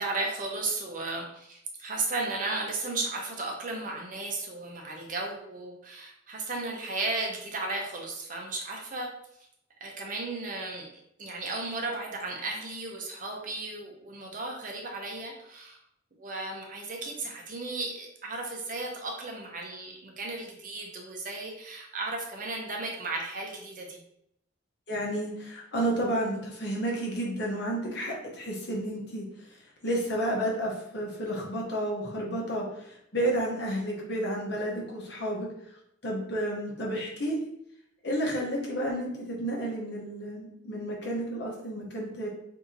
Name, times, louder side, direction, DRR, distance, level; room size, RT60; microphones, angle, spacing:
voice 1, 0.0-9.1 9.8-10.9 11.2-15.8 16.2-24.0, right 3 dB, 45° right, 0 dB, 0.7 m, -35 dB
voice 2, 24.9-29.2 29.8-32.8 33.1-35.5 36.0-37.4 38.0-42.3, right 1 dB, 60° left, -2 dB, 0.9 m, -31 dB
2.8 x 2.7 x 3.8 m, 0.75 s
head